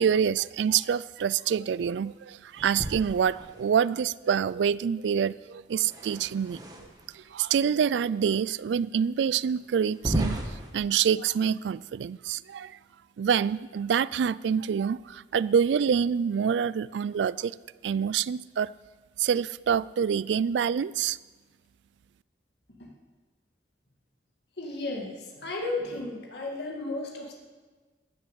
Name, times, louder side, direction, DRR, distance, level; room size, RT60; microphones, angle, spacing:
voice 1, 0.0-6.6 7.3-10.4 10.7-12.8 13.2-17.5 17.8-18.7 19.2-21.2, right 7 dB, 85° right, 20 dB, 0.3 m, -26 dB
sound 1, 2.6-3.9 5.7-7.2 7.9-8.0 8.7-8.8 9.9-10.7, right 1 dB, 20° right, 1.3 m, -34 dB
voice 2, 24.6-27.3, left 2 dB, 75° left, -1 dB, 2.2 m, -34 dB
13.0 x 7.1 x 8.3 m, 1.3 s
head